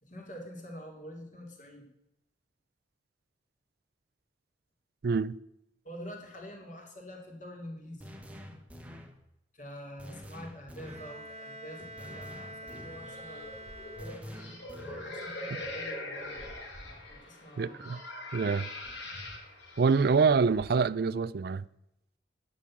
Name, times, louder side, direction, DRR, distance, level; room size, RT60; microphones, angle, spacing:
voice 1, 0.0-1.9 5.8-8.1 9.5-13.5 15.0-16.5 17.1-17.9, equal, 45° left, 2.9 m, -46 dB
voice 2, 5.0-5.4 17.6-18.0 18.3-18.7 19.8-21.6, right 5 dB, 60° right, 0.4 m, -26 dB
sound 1, 8.0-9.2 10.0-11.2 12.0-13.2 14.0-15.2, equal, 10° right, 1.1 m, -47 dB
Bowed string instrument, 10.8-14.6, right 1 dB, 35° right, 1.4 m, -46 dB
sound 2, 13.0-20.9, left 2 dB, 85° left, 3.8 m, -42 dB
9.9 x 6.3 x 8.6 m
head